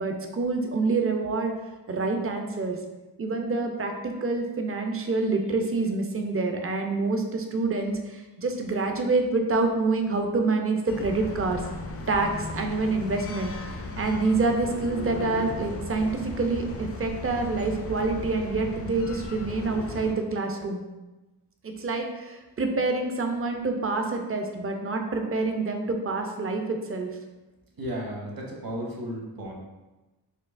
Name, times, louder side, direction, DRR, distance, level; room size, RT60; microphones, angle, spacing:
voice 1, 0.0-1.5 1.9-2.8 3.2-11.6 12.1-20.8 21.6-27.1, right 3 dB, 35° right, 4 dB, 0.5 m, -27 dB
sound 1, 10.9-20.1, left 3 dB, 35° left, 0.4 m, -36 dB
voice 2, 27.8-29.5, equal, 55° right, -1 dB, 0.9 m, -34 dB
4.4 x 2.7 x 2.5 m, 1.1 s
wide cardioid pair, 85°, 44 cm